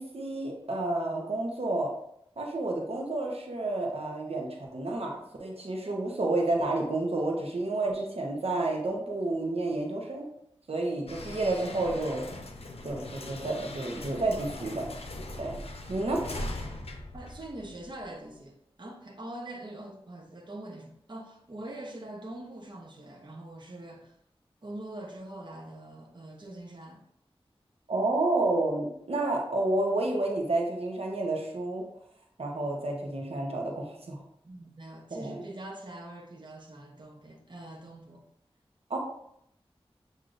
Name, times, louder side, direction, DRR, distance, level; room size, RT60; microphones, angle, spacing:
voice 1, 0.0-1.9 2.4-10.3 10.7-12.2 12.8-14.8 15.4-15.6 15.9-16.2 27.9-31.8 32.4-34.2 35.1-35.4 38.9-39.0, right 2 dB, 75° right, -1 dB, 0.9 m, -30 dB
Garage Door Opening & Closing, 11.1-18.0, left 1 dB, 80° left, 0.6 m, -40 dB
voice 2, 17.1-24.2 24.6-27.0 34.4-38.2, right 1 dB, 50° right, 0 dB, 0.8 m, -43 dB
7.7 x 2.7 x 2.5 m, 0.73 s
wide cardioid pair, 50°, 10 cm